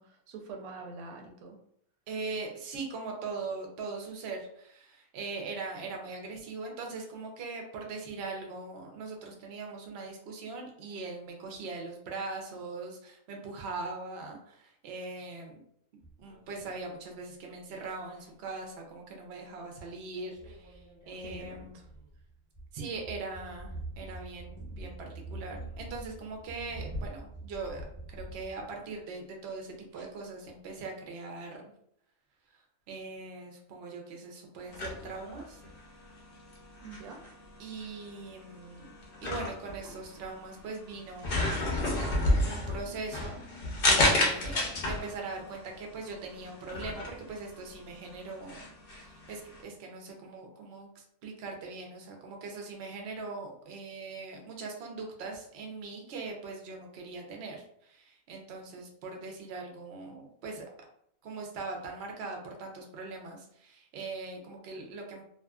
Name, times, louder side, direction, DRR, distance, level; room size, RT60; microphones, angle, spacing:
voice 1, 0.0-1.6 21.2-21.9 36.8-37.2, right 4 dB, 85° right, 2 dB, 1.1 m, -45 dB
voice 2, 2.1-15.6 15.9-21.8 22.7-27.8 28.1-31.7 32.9-35.6 37.6-41.7 42.4-43.4 43.8-60.7 61.2-65.2, right 3 dB, 60° right, 1 dB, 0.7 m, -41 dB
sound 1, 16.0-16.9 17.8-18.3 19.6-19.8 20.1-29.0 29.9-30.1, right 1 dB, 25° right, 1.1 m, -44 dB
sound 2, 34.7-49.6, left 2 dB, 50° left, 0.7 m, -32 dB
2.6 x 2.5 x 2.3 m, 0.69 s
omnidirectional pair, 1.5 m